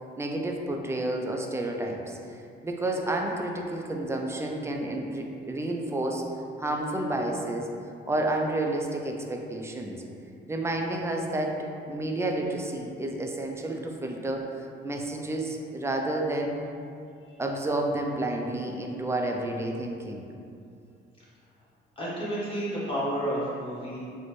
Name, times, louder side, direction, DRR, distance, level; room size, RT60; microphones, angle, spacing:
voice 1, 0.2-2.2 2.6-6.3 6.6-7.7 8.1-10.0 10.5-11.6 11.9-16.6 17.4-20.3, right 1 dB, 15° right, 1 dB, 0.4 m, -30 dB
voice 2, 21.9-24.0, right 1 dB, 25° left, -8 dB, 1.3 m, -31 dB
4.0 x 2.1 x 3.1 m, 2.5 s
cardioid pair, 90°, 20 cm